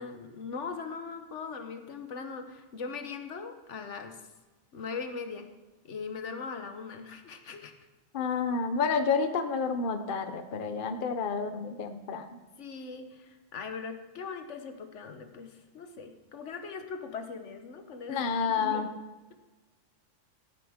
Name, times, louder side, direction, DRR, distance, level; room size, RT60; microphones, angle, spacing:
voice 1, 0.0-4.2 4.7-5.5 5.8-7.7 12.6-18.3 18.6-18.9, left 5 dB, 70° left, 6 dB, 1.3 m, -40 dB
voice 2, 8.1-12.3 18.1-18.9, left 5 dB, 50° left, 7 dB, 0.9 m, -29 dB
15.0 x 9.4 x 3.6 m, 1.2 s
omnidirectional pair, 1.3 m